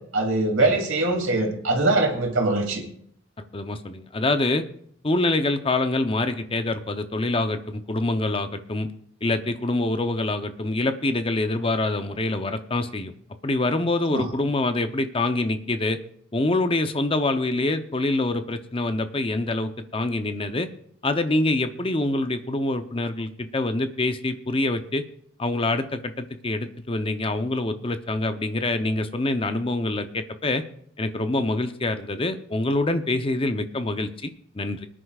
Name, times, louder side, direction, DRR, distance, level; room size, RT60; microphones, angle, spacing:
voice 1, 0.1-2.8 14.1-14.3, right 2 dB, 80° right, 1 dB, 2.8 m, -22 dB
voice 2, 3.5-4.6 5.0-8.9 9.2-13.1 13.4-16.0 16.3-20.7 21.0-25.0 25.4-30.6 31.0-34.9, left 2 dB, 25° left, 9 dB, 0.7 m, -25 dB
24.0 x 9.9 x 2.4 m, 0.66 s
head